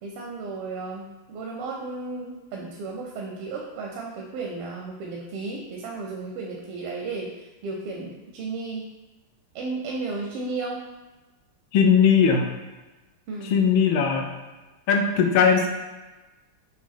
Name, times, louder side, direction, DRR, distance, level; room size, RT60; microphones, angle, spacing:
voice 1, 0.0-8.9 9.5-10.8 13.3-13.6, right 3 dB, 85° right, 0 dB, 1.5 m, -34 dB
voice 2, 11.7-12.5 13.4-14.3 14.9-15.7, left 6 dB, 75° left, 3 dB, 1.4 m, -19 dB
6.2 x 2.3 x 3.6 m, 1.2 s
omnidirectional pair, 2.4 m